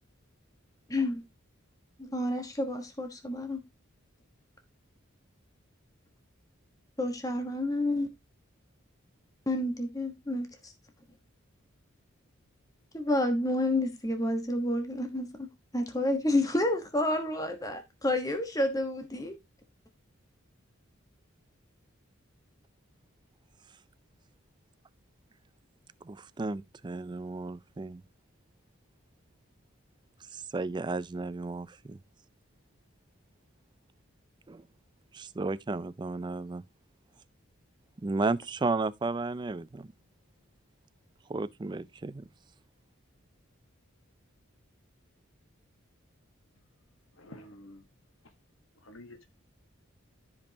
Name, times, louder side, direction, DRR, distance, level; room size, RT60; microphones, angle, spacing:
voice 1, 0.9-1.2 2.0-3.6 7.0-8.1 9.5-10.7 12.9-15.5 15.7-19.4, left 1 dB, 15° left, 1.2 m, -29 dB
voice 2, 26.0-28.0 30.3-32.0 34.5-34.6 35.1-36.6 38.0-39.9 41.3-42.3, right 3 dB, 20° right, 0.4 m, -33 dB
voice 3, 47.2-47.8 48.8-49.2, left 1 dB, 70° left, 1.2 m, -49 dB
13.5 x 5.2 x 2.8 m
head